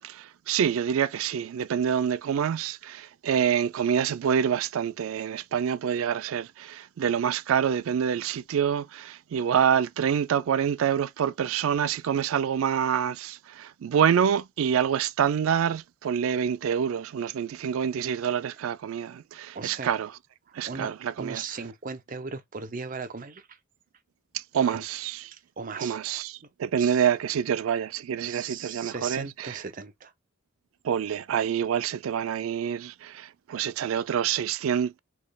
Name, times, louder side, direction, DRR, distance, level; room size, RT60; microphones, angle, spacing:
voice 1, 0.0-20.1 20.5-21.4 24.3-25.3 25.8-29.6 30.8-35.0, right 8 dB, 90° right, 0.4 m, -27 dB
voice 2, 19.5-19.9 20.5-23.6 24.7-24.8 25.3-26.2 26.8-27.1 28.2-30.1, right 5 dB, 40° right, 0.6 m, -38 dB
4.2 x 3.3 x 2.3 m
head